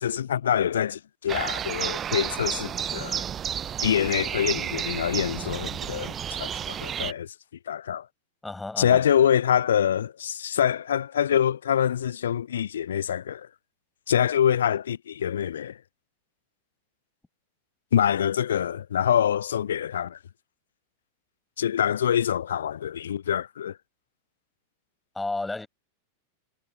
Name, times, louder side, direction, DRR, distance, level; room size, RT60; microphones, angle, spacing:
voice 1, 0.0-3.2 3.8-7.3 7.7-8.1 8.8-13.5 14.1-15.8 17.9-20.2 21.6-23.8, left 9 dB, 65° left, 0.5 m, -25 dB
sound 1, 1.3-7.1, right 9 dB, 25° right, 0.7 m, -31 dB
voice 2, 8.4-9.0 25.1-25.7, left 2 dB, 5° left, 7.7 m, -32 dB
figure-of-eight pair, 90°, 0 cm